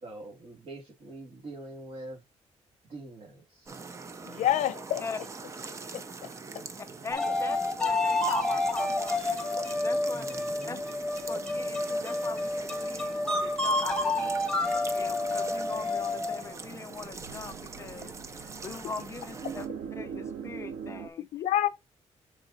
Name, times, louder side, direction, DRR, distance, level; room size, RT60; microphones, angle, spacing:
voice 1, 0.0-2.2 2.8-3.8 10.1-10.8, right 2 dB, 45° right, 2.3 m, -44 dB
sound 1, 3.7-19.7, right 4 dB, 25° right, 0.5 m, -43 dB
voice 2, 4.2-5.0 5.9-6.3 21.2-21.7, left 12 dB, 85° left, 0.6 m, -28 dB
voice 3, 6.8-10.3 10.7-10.8 11.3-21.3, left 5 dB, 25° left, 0.5 m, -41 dB
sound 2, 7.1-16.6, left 2 dB, 5° left, 1.1 m, -29 dB
sound 3, 14.9-21.1, right 7 dB, 80° right, 0.8 m, -43 dB
6.3 x 3.9 x 4.0 m
cardioid pair, 180°, 12 cm